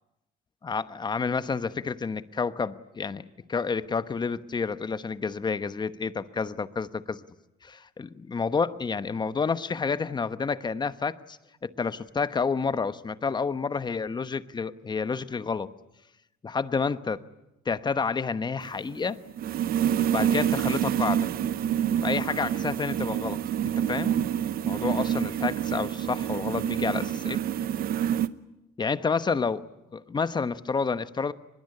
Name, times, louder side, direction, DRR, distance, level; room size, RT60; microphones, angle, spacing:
voice 1, 0.6-7.2 7.6-15.7 16.4-17.2 17.6-19.2 20.1-21.3 22.0-23.4 23.6-24.1 24.6-27.4 28.8-29.7 29.9-31.3, left 5 dB, 25° left, 13 dB, 1.1 m, -29 dB
sound 1, 18.6-28.3, right 10 dB, 60° right, 0.9 m, -27 dB
24.0 x 21.5 x 10.0 m, 0.92 s
cardioid pair, 110°, 17 cm